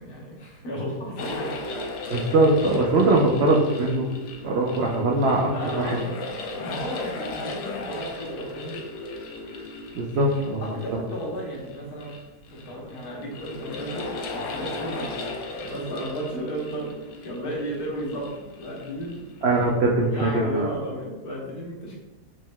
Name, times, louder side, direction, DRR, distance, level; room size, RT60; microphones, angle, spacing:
voice 1, 0.0-1.6 5.5-8.8 10.6-12.2 12.5-15.2 15.5-19.4 20.1-22.4, right 1 dB, 70° left, -4 dB, 1.6 m, -34 dB
sound 1, 1.2-19.8, left 2 dB, 85° left, 1.2 m, -36 dB
voice 2, 2.1-4.1 4.4-6.0 9.9-10.7 19.4-20.7, right 2 dB, 75° right, -2 dB, 0.6 m, -21 dB
5.1 x 3.6 x 2.2 m, 1.1 s
omnidirectional pair, 1.7 m